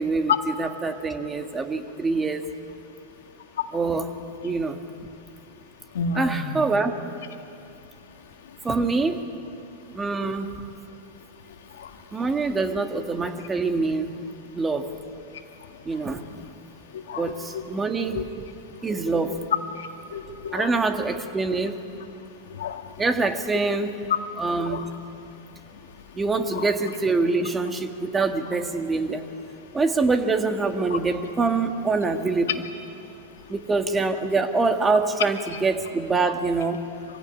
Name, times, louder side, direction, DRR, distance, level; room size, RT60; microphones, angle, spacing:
voice 1, 0.0-2.4 3.7-4.1 4.4-4.8 6.2-7.0 8.6-9.3 9.9-10.5 12.1-14.1 14.5-14.9 15.9-16.3 17.2-18.2 18.8-19.4 20.5-21.8 23.0-24.0 24.4-24.9 26.2-29.3 29.7-32.6 33.5-36.8, right 3 dB, 15° right, 6 dB, 1.9 m, -25 dB
voice 2, 5.9-6.6 11.8-11.9 16.9-17.6 18.1-18.2 19.8-20.7 22.5-22.9 24.6-24.8 26.6-26.7, left 4 dB, 75° left, 5 dB, 2.0 m, -31 dB
25.0 x 16.5 x 10.0 m, 2.7 s
hypercardioid pair, 105°, 0 cm